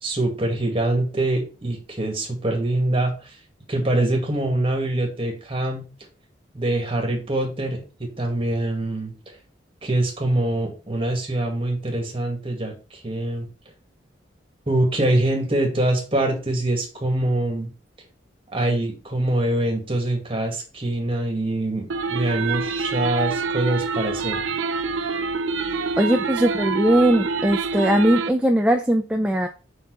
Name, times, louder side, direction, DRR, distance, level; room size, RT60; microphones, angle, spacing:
voice 1, 0.0-3.4 3.7-5.8 6.5-9.4 9.8-13.5 14.7-17.7 18.5-24.4, right 1 dB, 30° right, 1 dB, 2.0 m, -24 dB
sound 1, 21.9-28.3, right 4 dB, 90° right, 0.6 m, -26 dB
voice 2, 26.0-29.5, right 1 dB, 5° right, 3 dB, 0.4 m, -19 dB
5.5 x 4.7 x 4.6 m, 0.34 s
head